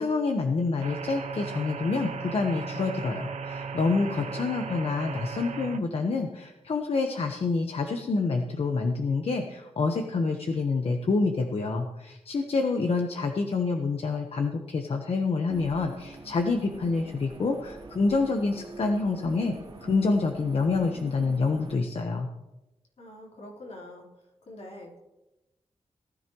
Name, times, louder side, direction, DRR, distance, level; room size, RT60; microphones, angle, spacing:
voice 1, 0.0-19.5 19.8-22.3, left 3 dB, 60° left, 4 dB, 1.2 m, -27 dB
sound 1, 0.8-5.8, right 5 dB, 90° right, 1.0 m, -36 dB
voice 2, 4.2-4.5 23.0-24.1 24.4-25.0, left 1 dB, 75° left, -2 dB, 4.0 m, -45 dB
sound 2, 15.5-21.8, right 3 dB, 55° right, 3.0 m, -44 dB
18.5 x 13.5 x 3.1 m, 0.97 s
wide cardioid pair, 160°, 11 cm